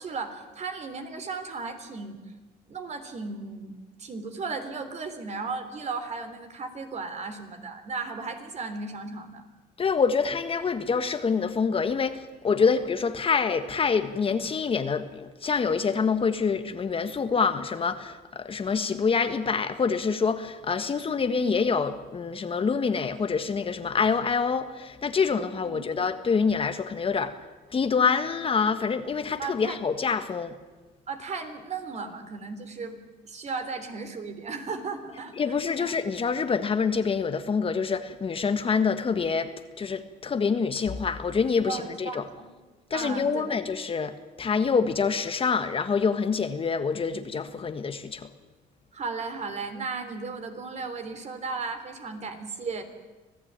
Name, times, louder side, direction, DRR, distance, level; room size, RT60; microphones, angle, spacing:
voice 1, 0.0-2.2 2.6-9.4 25.6-25.9 29.4-29.8 31.1-33.0 33.2-35.9 41.7-42.5 42.9-43.6 48.9-52.8, right 4 dB, 40° right, 8 dB, 3.3 m, -35 dB
voice 2, 9.8-27.4 27.7-30.6 35.4-39.5 39.8-42.2 42.9-48.3, left 5 dB, 35° left, 9 dB, 1.5 m, -26 dB
26.0 x 16.0 x 8.9 m, 1.2 s
cardioid pair, 110°, 17 cm